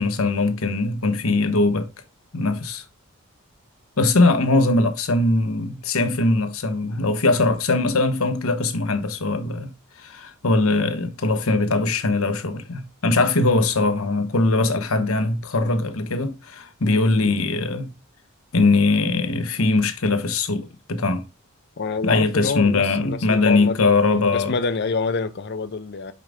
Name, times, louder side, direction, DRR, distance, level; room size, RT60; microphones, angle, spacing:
voice 1, 0.0-1.9 2.3-2.8 4.0-9.7 10.0-17.9 18.5-21.2 22.0-24.5, left 3 dB, 80° left, 1.0 m, -21 dB
voice 2, 21.8-24.0 24.3-26.1, left 4 dB, 50° left, 0.6 m, -26 dB
5.7 x 4.9 x 3.5 m
head